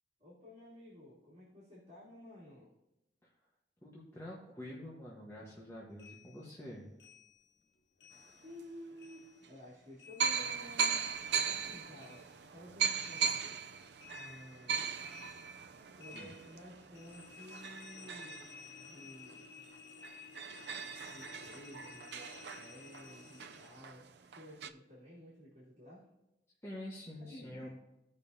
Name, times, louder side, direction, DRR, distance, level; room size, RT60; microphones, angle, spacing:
voice 1, 0.2-2.7 8.4-11.2 11.5-13.5 14.1-14.8 16.0-19.7 21.1-26.0 27.2-27.7, equal, 40° right, -9 dB, 2.7 m, -53 dB
voice 2, 3.8-6.9 16.1-16.3 26.6-27.7, left 1 dB, 15° left, -6 dB, 1.2 m, -47 dB
sound 1, 6.0-8.7 9.0-11.7 12.0-23.8, left 6 dB, 80° left, 0.8 m, -56 dB
sound 2, 8.5-8.6 9.4-9.5 10.2-19.4 19.7-19.8 20.0-24.7, right 6 dB, 70° right, 0.5 m, -38 dB
16.0 x 5.4 x 2.7 m, 0.91 s
head